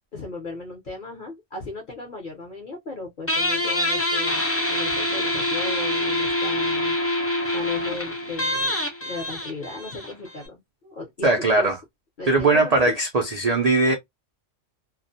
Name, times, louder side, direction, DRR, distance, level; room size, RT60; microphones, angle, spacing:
voice 1, 0.1-7.0 7.5-11.7 12.2-13.0, left 3 dB, 45° left, 0.8 m, -36 dB
Guitar, 3.3-10.5, left 1 dB, 20° left, 0.3 m, -25 dB
voice 2, 11.2-11.8 12.3-13.9, right 2 dB, 65° right, 0.4 m, -20 dB
2.4 x 2.1 x 2.5 m
omnidirectional pair, 1.4 m